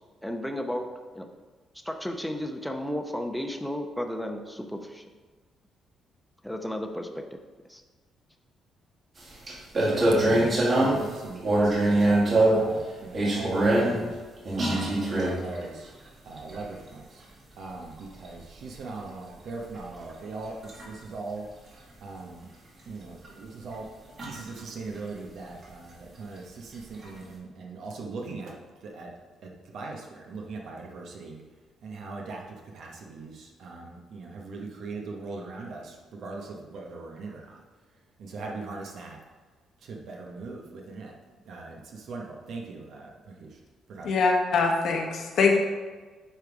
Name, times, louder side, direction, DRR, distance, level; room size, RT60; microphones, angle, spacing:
voice 1, 0.2-1.3 1.8-5.0 6.4-7.2 7.7-7.8, left 1 dB, 5° left, 5 dB, 0.8 m, -33 dB
sound 1, 9.2-9.3 9.5-11.1 11.4-12.7 13.1-14.0 14.5-15.6 16.4-16.6 18.3-18.5 20.1-20.2 20.6-20.8 23.2-23.3 23.7-23.8 24.2-24.6 27.0-27.1, right 1 dB, 45° right, 2.1 m, -23 dB
voice 2, 9.8-14.2 14.6-15.9 16.3-17.2 17.6-21.5 22.0-22.5 22.9-23.9 24.2-29.1 29.4-31.4 31.8-37.6 38.2-39.2 39.8-41.1 41.4-43.6 43.9-44.1, right 3 dB, 70° right, 0 dB, 1.0 m, -40 dB
voice 3, 44.0-45.6, left 4 dB, 70° left, 1 dB, 1.2 m, -23 dB
9.0 x 3.5 x 4.7 m, 1.4 s
cardioid pair, 90°, 0 cm